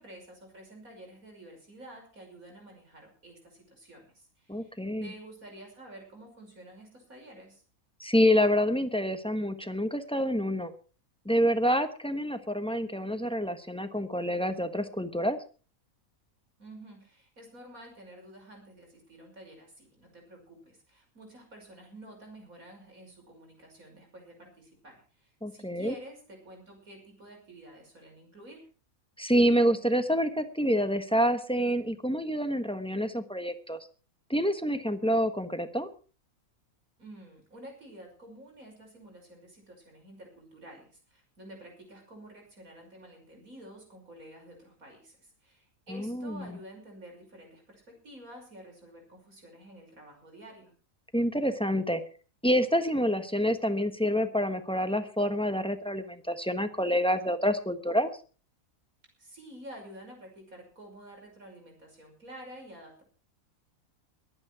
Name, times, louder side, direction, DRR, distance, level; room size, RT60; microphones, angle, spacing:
voice 1, 0.0-7.6 16.6-28.7 37.0-50.7 59.2-63.0, right 1 dB, 75° right, 2 dB, 6.3 m, -50 dB
voice 2, 4.5-5.1 8.0-10.7 11.2-15.4 25.4-25.9 29.2-33.8 34.3-35.9 45.9-46.5 51.1-52.0 52.4-58.1, equal, 5° left, 9 dB, 1.1 m, -27 dB
22.0 x 9.0 x 4.8 m, 0.38 s
omnidirectional pair, 1.5 m